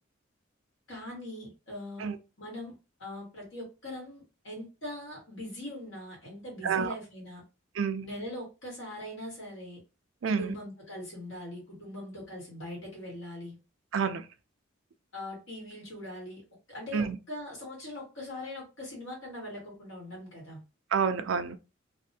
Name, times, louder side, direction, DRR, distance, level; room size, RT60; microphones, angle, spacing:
voice 1, 0.9-2.1 2.4-7.4 8.0-9.8 10.2-13.6 15.1-16.4 16.7-20.6, left 1 dB, 70° left, 2.0 m, -41 dB
voice 2, 6.6-6.9 7.8-8.1 10.2-10.5 13.9-14.2 16.9-17.2 20.9-21.6, right 6 dB, 75° right, 0.4 m, -28 dB
3.3 x 2.4 x 2.7 m
head